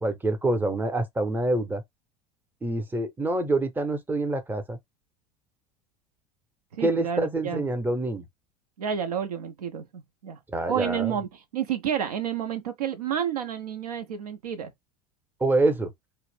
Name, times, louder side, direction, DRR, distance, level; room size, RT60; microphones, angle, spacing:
voice 1, 0.0-1.8 2.6-4.8 6.8-8.3 10.5-11.1 15.4-15.9, right 2 dB, 10° right, 0.6 m, -26 dB
voice 2, 6.7-7.6 8.8-10.4 10.7-14.7, right 8 dB, 75° right, 0.5 m, -30 dB
2.4 x 2.0 x 3.2 m
figure-of-eight pair, 70°, 20 cm